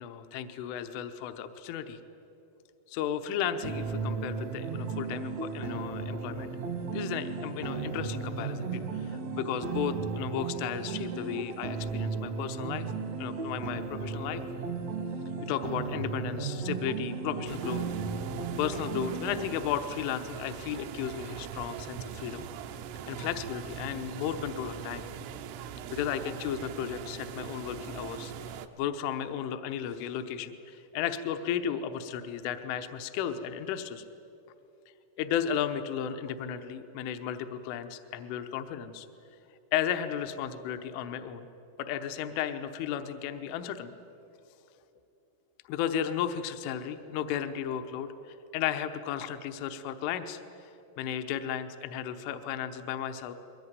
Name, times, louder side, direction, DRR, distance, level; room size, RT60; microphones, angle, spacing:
voice 1, 0.0-2.0 2.9-6.5 6.9-12.9 13.2-14.4 15.4-17.9 18.6-22.5 23.1-25.1 25.9-28.3 28.8-34.0 35.2-39.1 39.7-41.5 41.8-43.9 45.7-50.4 51.0-53.3, left 9 dB, 75° left, 9 dB, 3.3 m, -34 dB
sound 1, 3.6-19.6, right 5 dB, 60° right, 1.8 m, -35 dB
sound 2, 17.5-28.7, right 8 dB, 80° right, 3.3 m, -41 dB
22.0 x 20.0 x 9.6 m, 2.8 s
omnidirectional pair, 6.0 m